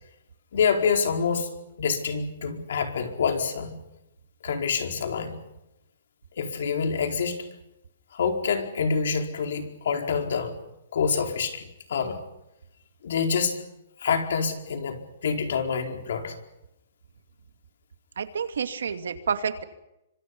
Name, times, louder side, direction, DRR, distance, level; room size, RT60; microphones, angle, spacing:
voice 1, 0.5-1.5 1.8-3.8 4.4-5.4 6.4-7.4 8.1-10.6 10.9-12.2 13.0-13.6 14.0-16.4, left 6 dB, 60° left, 4 dB, 4.6 m, -26 dB
voice 2, 18.2-19.6, right 6 dB, 85° right, 8 dB, 2.6 m, -29 dB
27.5 x 25.5 x 5.5 m, 0.89 s
hypercardioid pair, 175°, 0 cm